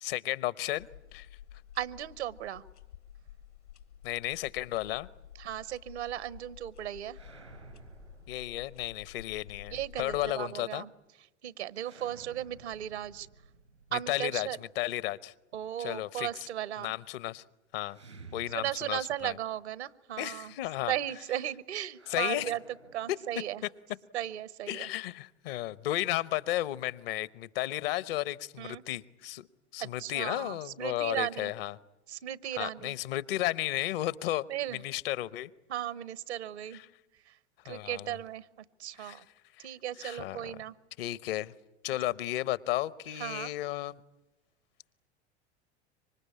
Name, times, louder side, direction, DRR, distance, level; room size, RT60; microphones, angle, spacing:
voice 1, 0.0-1.3 4.0-5.1 8.3-10.8 13.9-15.3 15.8-16.3 16.8-17.4 17.7-18.0 18.3-19.3 20.2-20.9 22.1-22.5 24.7-29.5 29.7-31.8 32.5-34.5 34.7-35.5 36.7-36.8 37.7-38.2 39.0-39.2 39.6-39.7 40.0-40.5 41.0-41.5 41.8-44.0, left 15 dB, 55° left, 19 dB, 1.0 m, -33 dB
sound 1, 0.8-10.3, left 10 dB, 80° left, 1.9 m, -51 dB
voice 2, 1.7-2.6 5.4-7.2 9.7-10.9 11.4-13.3 13.9-14.6 15.5-16.9 18.5-20.5 20.9-22.6 22.9-23.6 24.1-24.9 28.6-28.8 29.8-31.5 32.1-33.0 34.5-34.8 35.7-36.8 37.3-37.4 37.6-38.5 38.8-39.2 39.6-40.8 43.2-43.5, right 12 dB, 70° right, 18 dB, 1.1 m, -36 dB
sound 2, 7.1-9.1 11.7-14.7 17.9-19.3 19.6-19.7 21.9-23.7, right 4 dB, 90° right, 4.4 m, -53 dB
26.0 x 24.5 x 8.6 m, 0.99 s
figure-of-eight pair, 80°, 34 cm